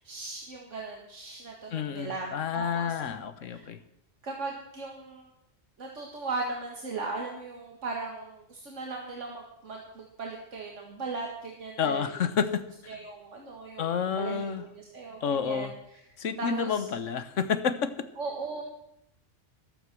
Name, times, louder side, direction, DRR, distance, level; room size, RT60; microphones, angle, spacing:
voice 1, 0.0-2.9 3.5-3.7 4.2-5.3 5.8-12.1 12.9-15.7 16.4-16.9 18.2-18.6, right 3 dB, 75° right, 0 dB, 2.2 m, -38 dB
voice 2, 1.7-3.8 11.8-12.6 13.8-14.6 15.2-15.7 16.2-17.9, left 6 dB, 85° left, 12 dB, 1.4 m, -29 dB
14.0 x 13.0 x 6.2 m, 0.77 s
omnidirectional pair, 1.3 m